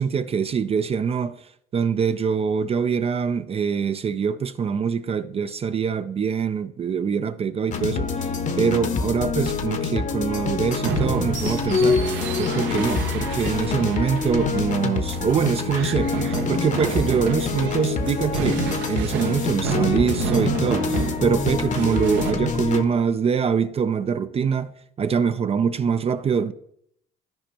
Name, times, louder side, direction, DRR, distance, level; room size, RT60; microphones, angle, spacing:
voice 1, 0.0-1.4 1.7-8.3 8.6-26.5, right 6 dB, 30° right, 0.4 m, -24 dB
sound 1, 7.7-22.8, left 4 dB, 40° left, 0.8 m, -26 dB
sound 2, 10.8-22.3, right 6 dB, 80° right, 1.1 m, -30 dB
13.0 x 5.1 x 2.9 m
cardioid pair, 95°, 19 cm